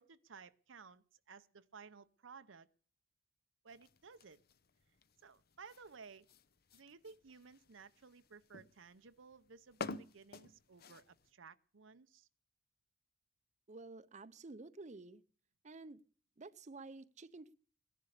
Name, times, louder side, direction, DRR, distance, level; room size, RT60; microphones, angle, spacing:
voice 1, 0.0-2.7 3.6-4.4 5.2-6.2 6.7-12.3, right 5 dB, 85° right, 12 dB, 0.8 m, -57 dB
sound 1, 3.7-11.3, left 4 dB, 55° left, 0.8 m, -52 dB
voice 2, 13.7-15.2 15.6-16.0 16.4-17.5, right 3 dB, 40° right, 12 dB, 0.6 m, -51 dB
16.0 x 11.0 x 6.6 m, 0.43 s
head